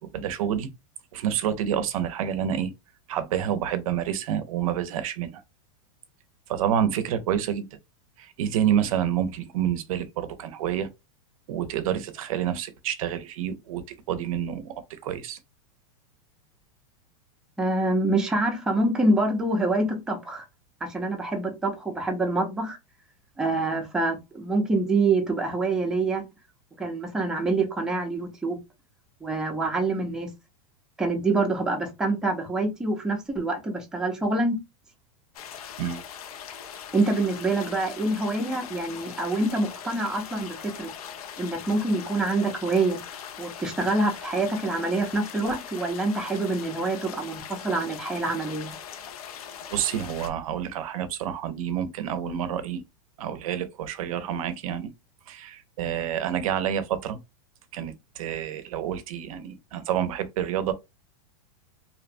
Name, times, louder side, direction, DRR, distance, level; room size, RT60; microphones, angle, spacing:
voice 1, 0.1-0.7 1.1-2.7 3.1-5.4 6.5-7.7 8.2-10.9 11.5-14.7 15.0-15.4 35.8-36.0 49.7-52.8 53.2-54.9 55.3-57.2 57.7-60.7, right 9 dB, 70° right, 0.5 m, -28 dB
voice 2, 17.6-20.4 20.8-22.8 23.4-26.2 26.8-28.6 29.2-30.3 31.0-34.6 36.9-40.9 41.4-43.0 43.4-48.7, right 2 dB, 5° right, 0.5 m, -26 dB
sound 1, 35.3-50.3, left 8 dB, 90° left, 0.7 m, -41 dB
2.7 x 2.1 x 2.5 m
supercardioid pair, 160°, 18 cm